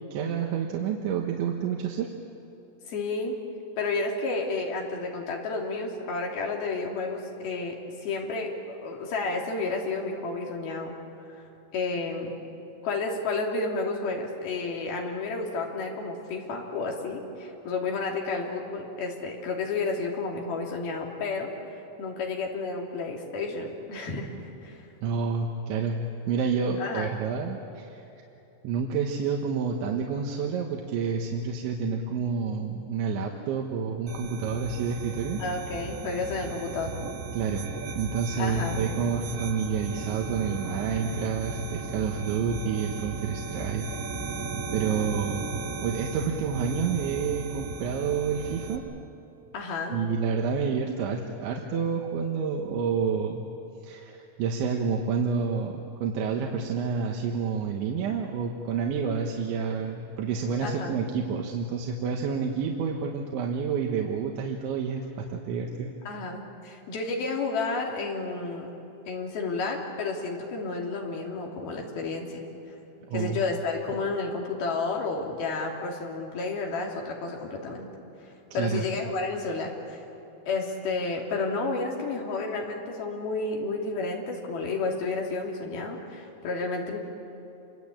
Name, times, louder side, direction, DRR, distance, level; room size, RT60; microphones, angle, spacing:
voice 1, 0.1-2.1 25.0-28.0 28.6-35.4 37.3-43.9 44.7-45.5 45.8-48.8 49.9-53.4 53.8-65.9 73.1-73.4 78.5-78.8, right 6 dB, 75° right, 1 dB, 3.7 m, -29 dB
voice 2, 2.9-3.4 3.8-10.9 11.4-12.4 12.8-24.8 26.8-27.1 35.4-36.9 38.4-38.8 49.5-50.0 59.3-59.4 60.6-61.0 66.1-68.7 69.1-72.4 73.1-77.9 78.2-80.0 80.5-87.0, left 3 dB, 55° left, 0 dB, 4.8 m, -31 dB
sound 1, 34.1-48.8, right 3 dB, 55° right, 1.7 m, -36 dB
28.5 x 24.5 x 8.6 m, 3.0 s
omnidirectional pair, 5.5 m